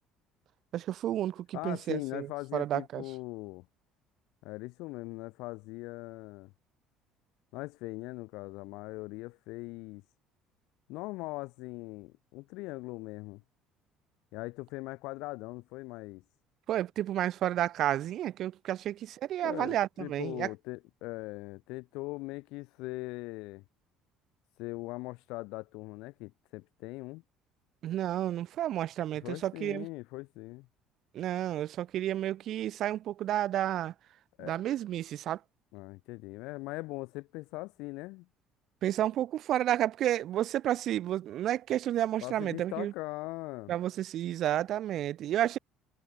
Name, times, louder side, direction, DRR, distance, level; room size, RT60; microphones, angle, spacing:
voice 1, 0.7-2.3 2.5-3.0 16.7-20.5 27.8-29.9 31.1-33.9 34.4-35.4 38.8-42.9 43.7-45.6, right 12 dB, 60° right, 3.4 m, -31 dB
voice 2, 1.5-3.7 4.4-6.5 7.5-10.0 10.9-13.4 14.3-16.2 19.4-23.6 24.6-27.2 29.2-30.7 34.4-34.5 35.7-38.3 42.2-43.7, left 23 dB, 80° left, 2.2 m, -40 dB
supercardioid pair, 85°, 0 cm